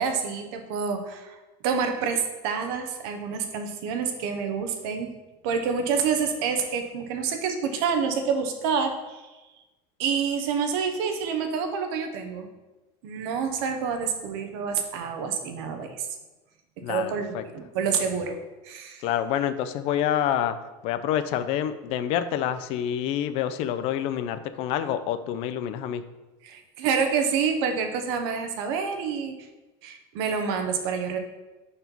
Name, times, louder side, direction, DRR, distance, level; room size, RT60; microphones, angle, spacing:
voice 1, 0.0-1.4 1.6-5.1 5.4-9.3 10.0-12.5 13.0-16.1 16.8-18.4 18.6-19.1 26.4-29.3 29.8-31.2, right 6 dB, 75° right, 6 dB, 0.9 m, -28 dB
voice 2, 16.8-17.4 19.0-20.6 20.8-26.0, left 10 dB, 50° left, 10 dB, 0.4 m, -27 dB
4.4 x 4.2 x 5.3 m, 1.1 s
cardioid pair, 165°, 13 cm